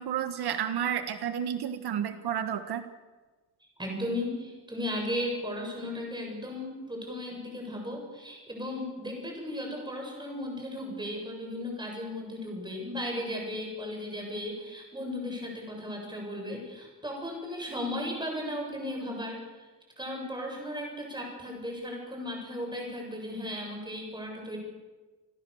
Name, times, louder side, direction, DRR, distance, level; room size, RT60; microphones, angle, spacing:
voice 1, 0.0-2.9, right 9 dB, 80° right, 9 dB, 1.4 m, -31 dB
voice 2, 3.8-19.7 20.0-24.6, left 1 dB, 10° right, 1 dB, 7.8 m, -36 dB
29.0 x 21.0 x 7.2 m, 1.3 s
wide cardioid pair, 150°, 38 cm